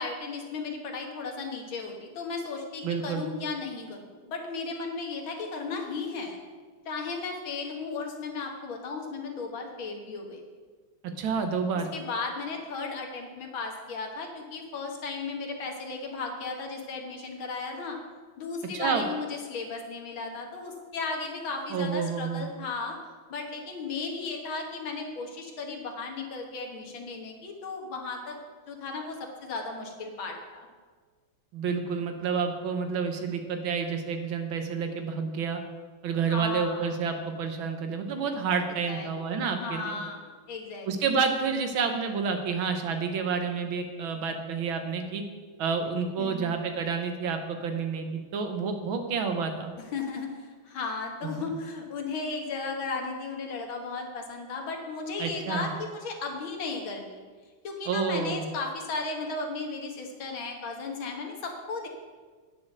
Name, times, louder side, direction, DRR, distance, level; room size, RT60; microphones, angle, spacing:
voice 1, 0.0-6.4 6.9-10.4 11.9-18.0 18.4-23.0 23.3-28.4 28.7-30.7 36.3-36.9 38.9-39.1 39.6-40.9 46.2-46.6 49.9-57.2 57.6-61.9, left 4 dB, 70° left, 2 dB, 2.2 m, -35 dB
voice 2, 2.8-3.2 11.2-11.9 18.7-19.1 21.7-22.5 31.5-35.6 36.0-40.0 40.9-45.2 45.6-49.7 51.2-51.5 55.2-55.7 57.9-58.5, right 5 dB, 70° right, 6 dB, 1.8 m, -29 dB
9.5 x 6.6 x 7.8 m, 1.5 s
omnidirectional pair, 2.3 m